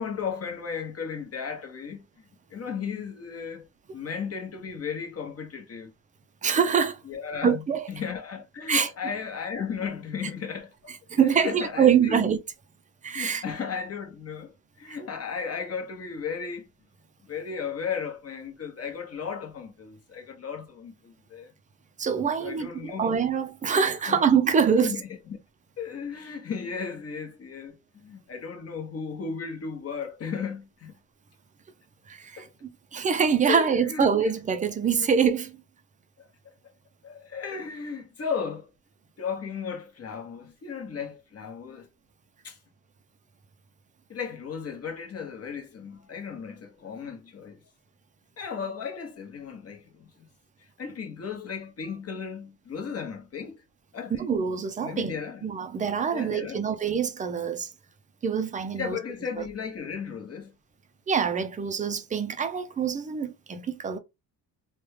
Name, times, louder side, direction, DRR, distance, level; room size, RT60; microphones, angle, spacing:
voice 1, 0.0-3.7 3.9-5.9 7.0-12.3 13.1-16.7 17.3-21.5 22.4-23.3 24.1-24.3 24.8-25.4 25.8-30.9 32.4-32.5 33.5-34.3 35.0-35.1 36.2-36.3 37.0-38.7 39.2-41.9 42.4-42.6 44.1-47.6 48.4-50.3 50.6-53.6 53.9-54.2 54.8-55.4 56.1-56.7 58.7-60.5, left 6 dB, 35° left, 0.9 m, -35 dB
voice 2, 6.4-7.0 7.4-7.8 8.7-8.9 11.1-12.4 13.0-13.4 14.9-15.0 22.0-24.9 32.1-35.6 54.2-55.1 55.4-57.7 58.2-59.0 61.1-64.0, right 7 dB, 20° right, 0.3 m, -25 dB
3.4 x 2.2 x 3.1 m
cardioid pair, 130°, 41 cm